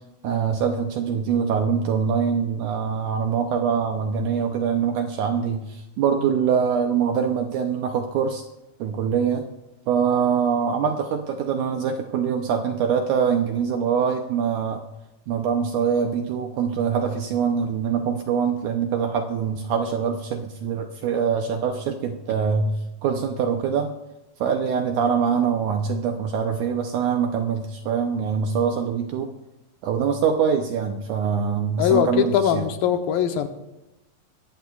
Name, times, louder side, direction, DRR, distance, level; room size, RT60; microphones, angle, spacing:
voice 1, 0.2-8.4 8.8-9.4 9.9-14.8 15.3-22.8 23.0-24.0 24.4-29.3 29.8-32.6, right 7 dB, 75° right, 4 dB, 1.9 m, -24 dB
voice 2, 31.8-33.5, left 9 dB, 80° left, 6 dB, 2.6 m, -21 dB
21.0 x 14.5 x 2.4 m, 0.95 s
omnidirectional pair, 4.3 m